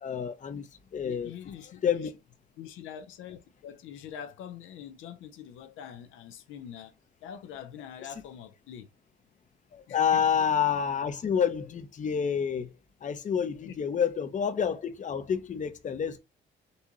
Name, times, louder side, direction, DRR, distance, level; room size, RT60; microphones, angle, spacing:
voice 1, 0.0-1.3 1.8-2.1 9.7-12.7 13.0-16.2, left 7 dB, 40° left, 0.6 m, -28 dB
voice 2, 1.0-2.1 2.6-6.9 7.2-8.9 9.9-10.2 13.6-14.3, left 9 dB, 85° left, 0.6 m, -44 dB
4.1 x 2.3 x 2.9 m
cardioid pair, 90°, 20 cm